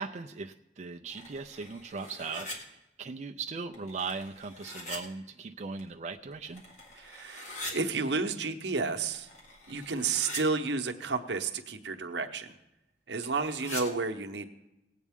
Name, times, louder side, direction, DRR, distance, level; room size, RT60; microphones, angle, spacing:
voice 1, 0.0-6.6, right 4 dB, 40° right, 3 dB, 0.4 m, -39 dB
sound 1, 1.1-2.6 3.7-5.0 5.8-5.9 6.3-7.7 8.9-10.4 13.2-13.8, left 1 dB, 45° left, 1.9 m, -43 dB
voice 2, 7.0-9.3 9.7-12.5 13.1-14.5, right 4 dB, 80° right, 6 dB, 0.9 m, -31 dB
18.5 x 8.3 x 3.6 m, 0.94 s
head